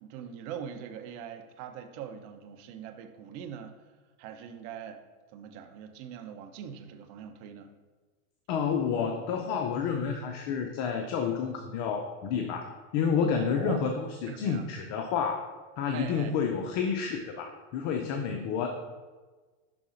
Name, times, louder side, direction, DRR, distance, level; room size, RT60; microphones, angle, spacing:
voice 1, 0.0-3.8 4.2-5.0 5.3-7.7 13.3-13.8 14.3-14.7 15.9-16.3, right 8 dB, 55° right, 6 dB, 0.8 m, -42 dB
voice 2, 8.5-18.8, left 6 dB, 50° left, 4 dB, 0.7 m, -30 dB
6.0 x 3.8 x 5.1 m, 1.3 s
supercardioid pair, 130°, 42 cm